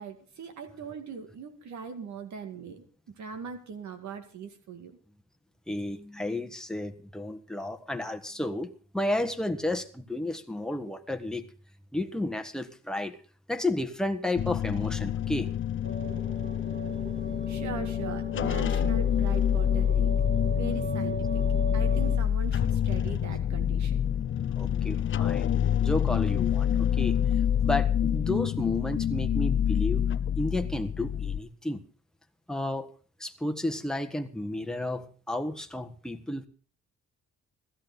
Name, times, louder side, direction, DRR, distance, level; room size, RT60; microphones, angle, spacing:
voice 1, 0.0-5.0 17.5-20.1 20.5-21.4 21.7-24.0, right 6 dB, 70° right, 7 dB, 2.3 m, -40 dB
voice 2, 5.7-11.4 11.9-13.2 13.5-15.5 24.6-25.5 25.8-27.2 27.6-30.1 30.4-31.8 32.5-32.9 33.2-36.5, left 1 dB, ahead, 6 dB, 1.4 m, -32 dB
sound 1, 14.4-31.4, left 9 dB, 40° left, 0.5 m, -27 dB
sound 2, 15.8-22.2, right 3 dB, 35° right, 2.7 m, -38 dB
16.0 x 14.0 x 3.9 m, 0.40 s
cardioid pair, 90°, 30 cm